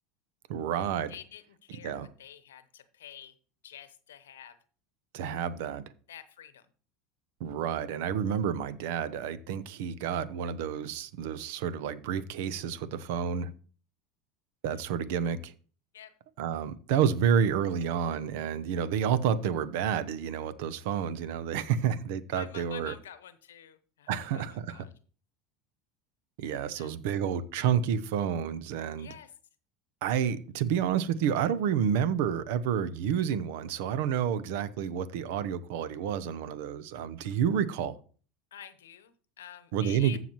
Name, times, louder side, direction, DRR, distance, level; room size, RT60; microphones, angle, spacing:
voice 1, 0.5-1.1 1.8-2.1 5.1-5.8 7.4-13.5 14.6-15.5 16.4-22.9 24.1-24.8 26.4-29.1 30.0-38.0 39.7-40.2, right 8 dB, 70° right, 0.8 m, -29 dB
voice 2, 1.1-3.4 3.6-4.6 6.1-6.7 14.7-14.8 15.9-16.1 22.3-24.9 26.5-26.9 28.8-29.3 38.5-40.2, left 10 dB, 85° left, 0.9 m, -48 dB
14.5 x 5.9 x 3.0 m
hypercardioid pair, 90°, 0 cm